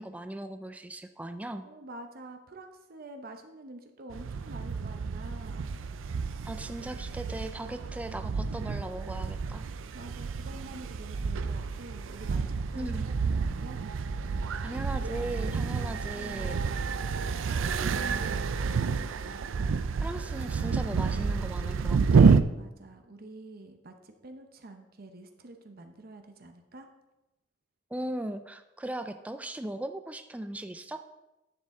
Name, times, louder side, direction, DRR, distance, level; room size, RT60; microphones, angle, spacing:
voice 1, 0.0-1.7 6.5-9.6 12.8-13.1 14.6-16.6 19.7-22.4 27.9-31.0, right 1 dB, 5° right, 8 dB, 0.3 m, -38 dB
voice 2, 1.6-5.8 9.4-9.7 9.9-13.8 16.1-16.8 17.5-19.1 22.6-26.9, right 2 dB, 50° right, 6 dB, 0.7 m, -47 dB
sound 1, 4.1-22.4, right 5 dB, 80° right, 0.4 m, -29 dB
10.5 x 6.6 x 3.7 m, 0.97 s
head